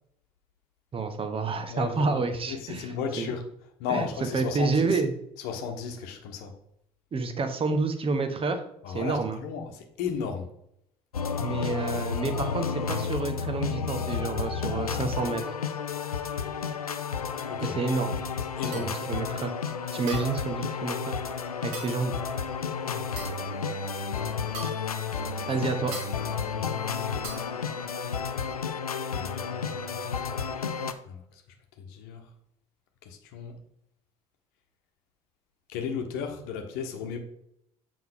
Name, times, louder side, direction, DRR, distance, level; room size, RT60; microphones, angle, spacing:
voice 1, 0.9-2.9 3.2-3.3 3.9-4.1 4.3-5.1 7.1-9.4 11.4-15.4 17.6-18.2 18.7-19.5 19.9-21.2 21.6-22.2 25.5-26.0, right 4 dB, 30° right, 8 dB, 1.0 m, -29 dB
voice 2, 1.7-3.4 3.8-5.0 5.4-6.5 8.8-10.5 17.5-17.8 18.4-18.9 25.4-25.5 26.4-26.7 29.1-30.4 31.0-31.4 31.8-32.3 33.0-33.5 35.7-37.2, left 6 dB, 60° left, 5 dB, 1.1 m, -35 dB
sound 1, 11.1-30.9, left 6 dB, 85° left, 0.4 m, -32 dB
sound 2, 18.7-19.0 20.1-20.5 21.7-22.0 23.2-23.5 24.5-25.0 25.9-26.2 27.2-27.5, right 3 dB, 65° right, 2.4 m, -40 dB
7.7 x 5.3 x 3.6 m, 0.75 s
figure-of-eight pair, 55°, 18 cm